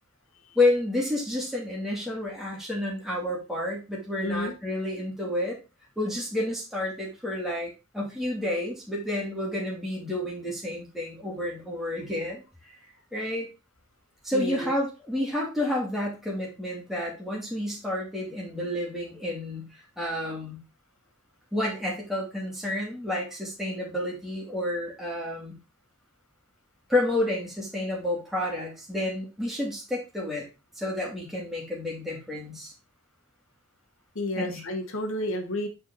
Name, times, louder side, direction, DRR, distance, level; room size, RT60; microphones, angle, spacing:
voice 1, 0.5-5.6 6.0-12.4 13.1-13.5 14.2-19.7 20.0-20.6 21.5-25.6 26.9-30.4 30.8-32.7 34.4-34.6, left 1 dB, ahead, -4 dB, 2.6 m, -30 dB
voice 2, 4.2-4.5 14.3-14.7 34.1-35.7, left 1 dB, 75° left, 5 dB, 1.5 m, -31 dB
7.0 x 4.6 x 4.1 m, 0.29 s
head